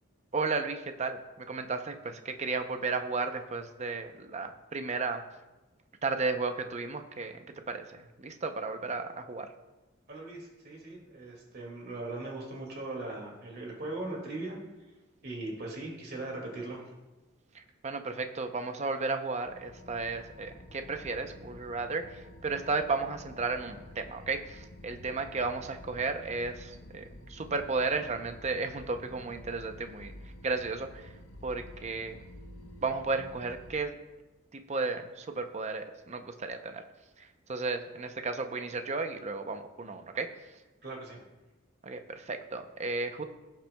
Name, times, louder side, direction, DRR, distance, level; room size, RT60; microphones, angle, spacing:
voice 1, 0.3-5.2 6.0-7.4 7.7-9.5 17.5-30.1 30.4-31.1 31.4-32.2 32.8-33.9 34.5-36.8 37.2-40.3 41.8-43.2, right 3 dB, 35° right, 7 dB, 0.6 m, -34 dB
voice 2, 10.1-14.6 15.2-16.8 40.8-41.2, right 2 dB, 50° right, -1 dB, 2.2 m, -39 dB
sound 1, 19.4-33.7, left 1 dB, 75° left, 1.0 m, -50 dB
18.0 x 7.4 x 2.3 m, 1.1 s
head